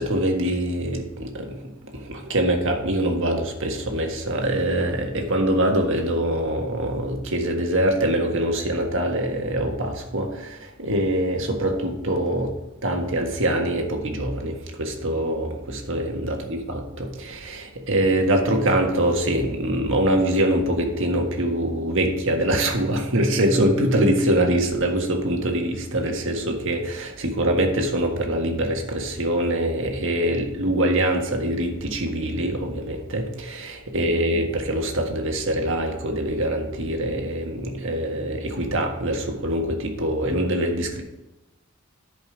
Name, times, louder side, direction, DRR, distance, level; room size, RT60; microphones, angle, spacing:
voice 1, 0.0-1.6 1.9-12.5 12.8-41.0, right 1 dB, 65° right, 2 dB, 1.6 m, -24 dB
10.5 x 5.2 x 5.1 m, 1.0 s
head